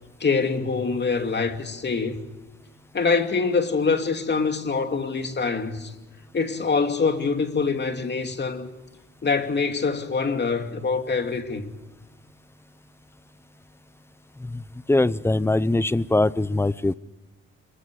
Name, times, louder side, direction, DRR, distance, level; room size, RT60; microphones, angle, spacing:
voice 1, 0.2-2.2 2.9-5.9 6.3-8.7 9.2-11.7, left 4 dB, 35° left, 2.6 m, -24 dB
voice 2, 14.9-16.9, left 2 dB, 10° left, 0.7 m, -21 dB
26.0 x 23.0 x 5.0 m
cardioid pair, 90°, 30 cm